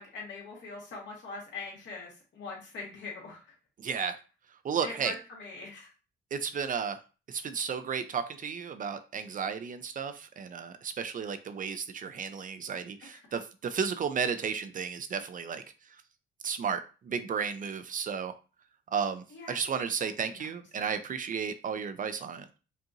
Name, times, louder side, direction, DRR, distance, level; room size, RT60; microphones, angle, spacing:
voice 1, 0.0-3.4 4.8-5.9 13.1-13.2 19.3-19.5 20.3-20.4, left 4 dB, 65° left, -2 dB, 2.0 m, -42 dB
voice 2, 3.8-4.2 4.6-5.1 6.3-7.0 7.3-15.6 16.4-18.3 18.9-22.5, right 6 dB, 45° right, 10 dB, 0.5 m, -33 dB
5.3 x 2.5 x 2.8 m, 0.33 s
cardioid pair, 90°, 20 cm